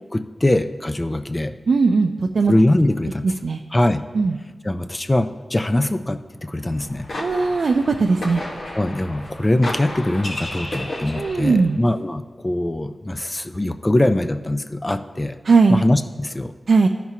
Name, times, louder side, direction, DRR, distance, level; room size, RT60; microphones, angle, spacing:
voice 1, 0.0-1.5 2.5-3.3 3.7-4.0 4.6-7.1 8.7-15.4 15.7-16.5, left 1 dB, 20° left, 10 dB, 0.3 m, -22 dB
voice 2, 1.7-2.5 3.4-3.6 4.1-4.4 7.2-8.4 11.2-11.8 15.5-15.8 16.7-16.9, right 4 dB, 70° right, 3 dB, 0.4 m, -18 dB
sound 1, 6.7-11.7, left 1 dB, 75° left, 1.2 m, -33 dB
15.0 x 5.9 x 2.8 m, 1.4 s
wide cardioid pair, 95°, 0 cm